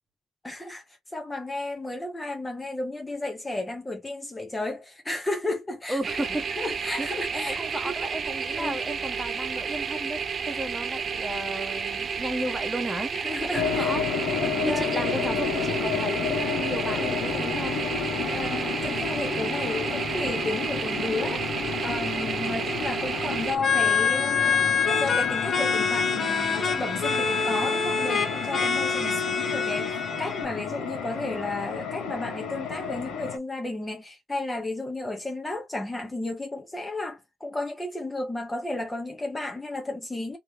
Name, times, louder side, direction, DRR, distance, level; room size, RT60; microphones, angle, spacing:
voice 1, 0.4-0.8 1.1-6.2 6.5-7.9 8.6-8.8 13.1-14.0 14.4-15.1 16.9-17.2 18.2-21.5 21.8-40.4, left 2 dB, 15° left, 1.0 m, -33 dB
voice 2, 5.9-6.7 6.9-10.2 10.5-14.1 14.6-17.8 22.4-22.6 29.0-29.3, right 1 dB, 10° right, 1.4 m, -34 dB
sound 1, 6.0-23.6, right 6 dB, 45° right, 0.5 m, -31 dB
sound 2, 13.5-33.4, left 6 dB, 80° left, 1.2 m, -31 dB
sound 3, 23.6-30.4, left 5 dB, 40° left, 1.2 m, -25 dB
3.3 x 3.0 x 3.2 m
cardioid pair, 90°, 0 cm